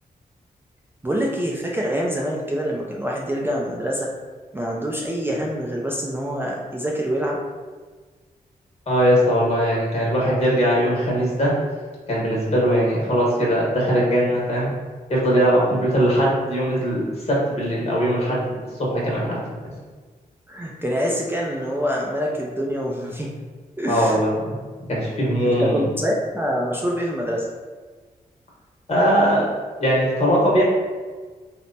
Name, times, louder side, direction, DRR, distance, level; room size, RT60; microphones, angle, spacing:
voice 1, 1.0-4.1 4.5-7.4 20.5-23.3 23.8-24.2 25.4-27.5, equal, 15° right, -3 dB, 0.4 m, -25 dB
voice 2, 8.9-11.5 12.1-14.7 15.1-19.4 23.9-24.5 24.9-25.9 28.9-29.5 29.8-30.6, equal, 45° left, -5 dB, 1.2 m, -20 dB
3.1 x 2.1 x 2.5 m, 1.4 s
cardioid pair, 60°, 15 cm